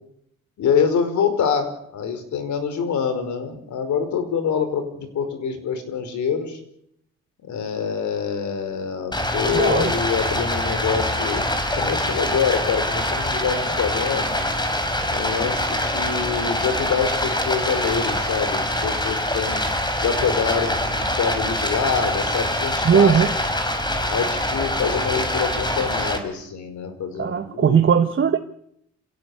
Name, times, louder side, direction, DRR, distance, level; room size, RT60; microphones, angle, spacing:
voice 1, 0.6-6.6 7.4-11.4 11.8-14.3 15.1-19.6 20.0-23.2 24.0-27.8, left 6 dB, 70° left, 9 dB, 5.4 m, -25 dB
Stream, 9.1-26.2, left 1 dB, 15° left, 4.9 m, -24 dB
voice 2, 9.5-9.9 22.8-23.3 27.2-28.4, right 7 dB, 40° right, 7 dB, 1.3 m, -18 dB
27.0 x 17.0 x 8.7 m, 0.76 s
cardioid pair, 90°, 30 cm